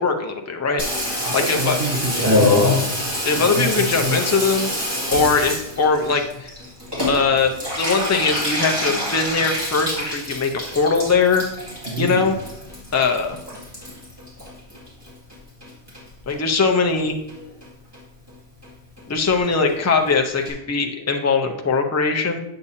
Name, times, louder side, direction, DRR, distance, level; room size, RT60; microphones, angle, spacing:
voice 1, 0.0-1.8 3.3-6.5 7.1-11.4 12.0-12.3 12.9-13.4 16.3-17.2 19.1-22.4, left 4 dB, 25° left, 3 dB, 0.4 m, -21 dB
Water tap faucet / Bathtub (filling or washing), 0.8-15.3 15.6-16.3 16.7-16.8 17.0-17.1 17.3-17.7 17.9-18.0 18.3-18.4 18.6-18.7 19.0-19.1 19.3-19.4 19.7-19.8 20.1-20.2 20.5-20.6, left 1 dB, 20° right, 2.2 m, -26 dB
voice 2, 1.2-2.8 3.3-4.2 11.9-12.3, right 2 dB, 85° right, 1 dB, 1.4 m, -27 dB
8.4 x 6.7 x 2.7 m, 0.83 s
omnidirectional pair, 1.2 m